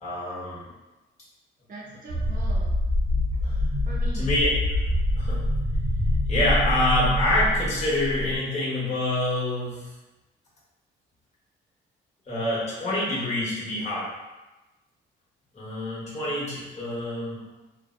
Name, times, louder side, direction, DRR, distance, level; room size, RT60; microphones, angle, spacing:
voice 1, 0.0-0.7 3.4-3.6 4.1-4.5 5.2-5.4 6.3-9.9 12.3-14.1 15.5-17.4, left 1 dB, 35° left, -8 dB, 1.1 m, -26 dB
voice 2, 1.7-2.7 3.8-4.3 17.4-17.5, right 2 dB, 45° right, -5 dB, 0.7 m, -41 dB
sound 1, 2.1-8.3, left 1 dB, 90° right, 0.6 m, -25 dB
2.6 x 2.0 x 2.5 m, 1.1 s
cardioid pair, 90°, 20 cm